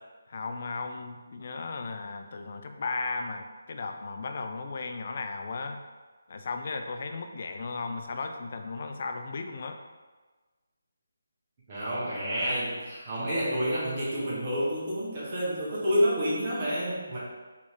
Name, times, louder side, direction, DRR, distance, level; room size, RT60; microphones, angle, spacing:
voice 1, 0.3-5.9 6.3-9.8, left 4 dB, 40° left, 5 dB, 0.3 m, -35 dB
voice 2, 11.7-17.2, equal, 30° right, -8 dB, 1.1 m, -29 dB
4.1 x 2.9 x 3.2 m, 1.3 s
figure-of-eight pair, 150°, 0 cm